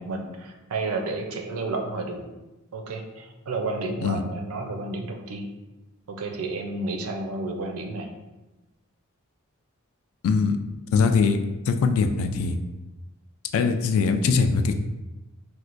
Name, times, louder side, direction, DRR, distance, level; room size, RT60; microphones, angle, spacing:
voice 1, 0.0-2.3 2.7-5.5 6.1-8.2, right 3 dB, 75° right, 4 dB, 0.5 m, -31 dB
voice 2, 10.2-10.6 10.9-11.4 11.7-12.6 13.5-14.7, left 5 dB, 65° left, 7 dB, 0.3 m, -21 dB
4.3 x 2.2 x 2.5 m, 1.1 s
head